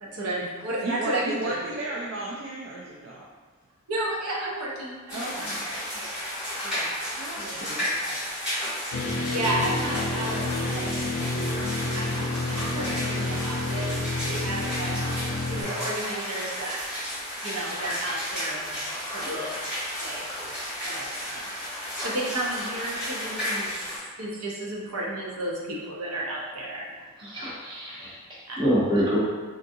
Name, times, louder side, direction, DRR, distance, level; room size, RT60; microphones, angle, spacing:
voice 1, 0.0-1.8 3.9-6.1 6.6-8.2 9.3-10.9 11.9-13.9 14.2-15.1 15.5-16.8 17.4-19.5 20.0-20.3 20.8-21.7 22.0-26.9 27.2-27.4 28.5-28.6, right 1 dB, 90° right, -4 dB, 0.8 m, -33 dB
voice 2, 0.8-3.2 5.1-5.5 7.2-7.9, right 2 dB, 55° right, -4 dB, 0.4 m, -34 dB
sound 1, 5.1-24.0, equal, ahead, 1.4 m, -33 dB
sound 2, 8.9-15.6, left 2 dB, 85° left, 0.5 m, -29 dB
voice 3, 27.2-28.2 28.6-29.2, equal, 20° right, -8 dB, 0.8 m, -26 dB
3.8 x 2.6 x 2.6 m, 1.4 s
head